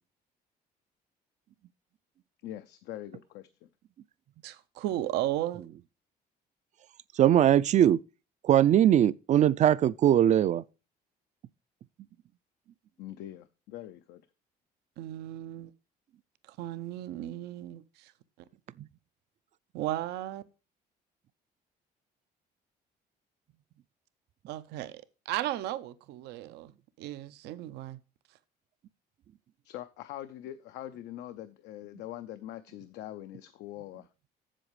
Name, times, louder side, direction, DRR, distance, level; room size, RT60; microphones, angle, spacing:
voice 1, 2.4-3.7 13.0-14.2 29.6-34.1, left 13 dB, 85° left, 0.6 m, -43 dB
voice 2, 4.4-5.6 15.0-15.7 16.5-18.1 19.7-20.4 24.5-26.7 27.0-28.0, right 14 dB, 85° right, 0.6 m, -35 dB
voice 3, 7.1-8.0 8.4-10.6 18.8-18.9, right 11 dB, 45° right, 0.4 m, -21 dB
7.7 x 7.3 x 4.8 m
cardioid pair, 110°, 17 cm